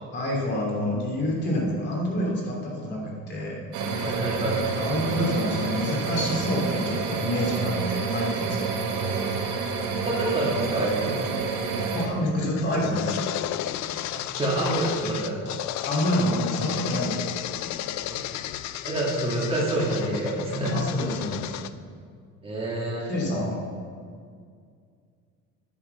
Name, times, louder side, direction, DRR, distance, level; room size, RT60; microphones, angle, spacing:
voice 1, 0.1-3.6 4.8-8.7 11.9-13.2 15.8-17.3 20.7-21.6 23.1-23.6, left 1 dB, 35° left, -2 dB, 3.0 m, -27 dB
sound 1, 3.7-12.1, right 4 dB, 90° right, 1.9 m, -28 dB
voice 2, 4.0-4.6 10.0-11.2 14.1-15.4 18.1-18.2 18.9-20.8 22.4-23.1, right 1 dB, 20° right, -5 dB, 2.1 m, -27 dB
sound 2, 12.0-21.7, left 12 dB, 65° left, 0.5 m, -33 dB
11.0 x 9.6 x 5.7 m, 2.1 s
cardioid pair, 160°, 30 cm